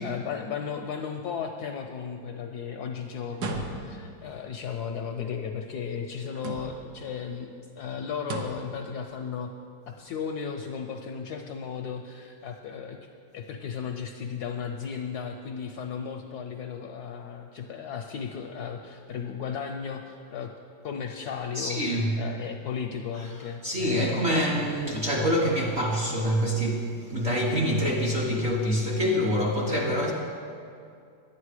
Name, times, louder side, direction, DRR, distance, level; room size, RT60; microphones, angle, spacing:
voice 1, 0.0-9.5 9.9-13.0 13.3-20.5 20.8-24.6, left 6 dB, 75° left, 4 dB, 0.9 m, -35 dB
sound 1, 3.3-4.1 6.3-7.0 8.2-8.7, right 3 dB, 65° right, 1.3 m, -35 dB
voice 2, 21.5-22.2 23.6-30.1, equal, 50° right, -2 dB, 0.9 m, -26 dB
11.0 x 9.0 x 4.8 m, 2.4 s
omnidirectional pair, 2.1 m